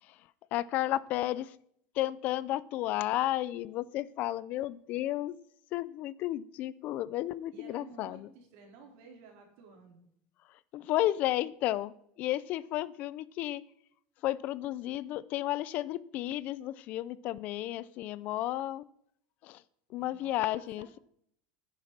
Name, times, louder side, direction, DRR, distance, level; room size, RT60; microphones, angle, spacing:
voice 1, 0.5-1.5 1.9-5.4 5.7-8.3 10.7-13.6 14.2-18.9 19.4-19.6 19.9-21.0, left 14 dB, 40° left, 19 dB, 0.4 m, -33 dB
voice 2, 7.5-10.0 19.9-20.9, right 4 dB, 55° right, 2 dB, 3.6 m, -54 dB
10.0 x 9.9 x 5.9 m, 0.69 s
cardioid pair, 165°, 4 cm